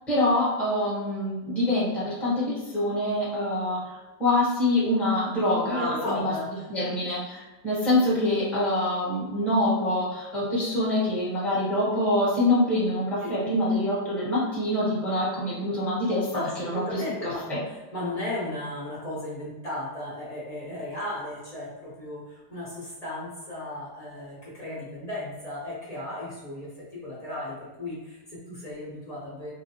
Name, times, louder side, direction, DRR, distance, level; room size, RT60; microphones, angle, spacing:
voice 1, 0.1-6.2 6.7-16.3 16.6-16.8 17.2-17.6, left 1 dB, ahead, -8 dB, 0.8 m, -25 dB
voice 2, 5.7-6.7 13.2-13.3 16.3-29.5, left 1 dB, 35° left, -8 dB, 0.7 m, -35 dB
3.9 x 2.2 x 2.8 m, 1.1 s
omnidirectional pair, 1.8 m